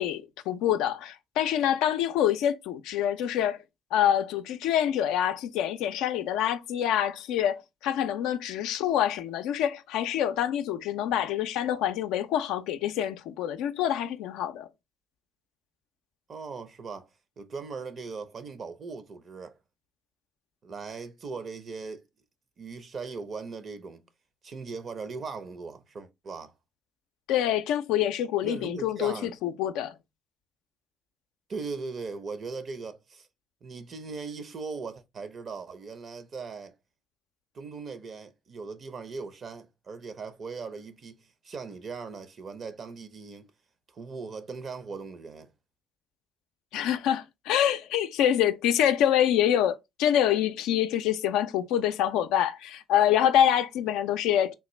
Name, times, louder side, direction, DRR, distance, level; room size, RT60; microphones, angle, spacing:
voice 1, 0.0-3.6 3.9-14.7 27.3-29.9 46.7-54.5, left 10 dB, 75° left, 0.3 m, -26 dB
voice 2, 16.3-17.1 17.4-19.6 20.6-22.0 22.6-24.0 24.4-26.5 28.4-29.4 31.5-33.3 33.6-36.7 37.5-43.5 43.9-45.5, right 4 dB, 50° right, 0.7 m, -39 dB
3.5 x 2.4 x 3.0 m
hypercardioid pair, 55°, 0 cm